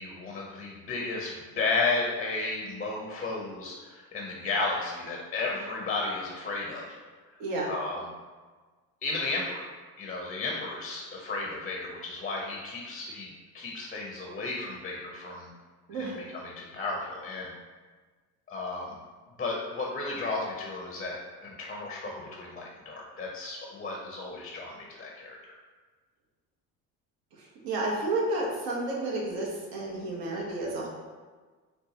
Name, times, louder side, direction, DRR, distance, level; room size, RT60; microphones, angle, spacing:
voice 1, 0.0-7.0 7.7-8.0 9.0-9.6 10.0-15.5 15.9-17.5 18.5-19.0 19.4-25.4, left 3 dB, 20° left, -1 dB, 0.5 m, -33 dB
voice 2, 27.6-30.9, right 2 dB, 75° right, -2 dB, 0.9 m, -31 dB
3.8 x 2.2 x 2.7 m, 1.4 s
supercardioid pair, 85°, 37 cm